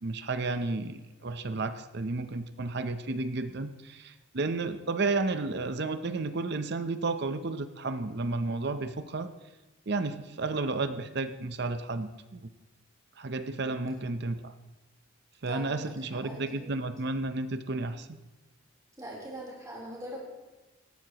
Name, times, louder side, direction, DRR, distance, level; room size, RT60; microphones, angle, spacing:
voice 1, 0.0-9.3 9.9-12.5 13.2-14.5 15.4-18.2, right 3 dB, 50° right, 10 dB, 0.7 m, -32 dB
voice 2, 15.4-15.8 16.2-16.8 19.0-20.2, right 1 dB, 15° right, -3 dB, 3.6 m, -42 dB
18.5 x 14.5 x 3.0 m, 1.1 s
head